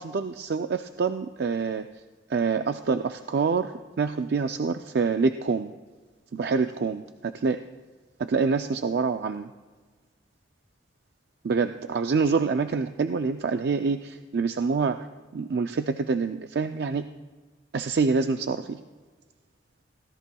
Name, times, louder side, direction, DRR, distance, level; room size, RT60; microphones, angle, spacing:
voice 1, 0.0-1.9 2.3-5.7 6.3-7.6 8.2-9.5 11.4-15.0 15.3-17.1 17.7-18.8, right 4 dB, 60° right, 8 dB, 0.4 m, -26 dB
22.5 x 16.5 x 2.3 m, 1.3 s
head